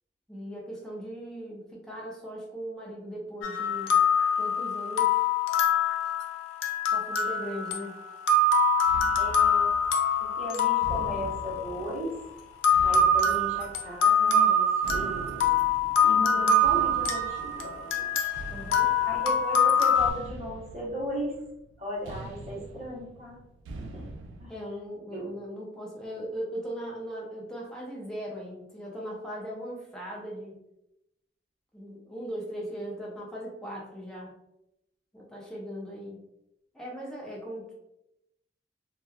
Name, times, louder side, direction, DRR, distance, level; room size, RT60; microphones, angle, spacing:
voice 1, 0.3-4.0 4.4-5.3 6.9-8.0 18.5-18.9 24.5-30.6 31.7-34.3 35.1-36.2 36.7-37.7, equal, 5° left, -4 dB, 0.5 m, -39 dB
sound 1, 3.4-12.0 12.6-20.1, left 3 dB, 90° left, 0.4 m, -24 dB
sound 2, 8.9-24.5, right 2 dB, 80° right, 0.3 m, -43 dB
voice 2, 9.2-9.7 10.2-12.2 12.8-15.4 16.0-18.3 19.0-21.4 21.8-23.4 23.8-24.1 24.4-24.7 25.1-25.3, equal, 35° right, -6 dB, 0.9 m, -36 dB
2.9 x 2.2 x 2.2 m, 0.85 s
head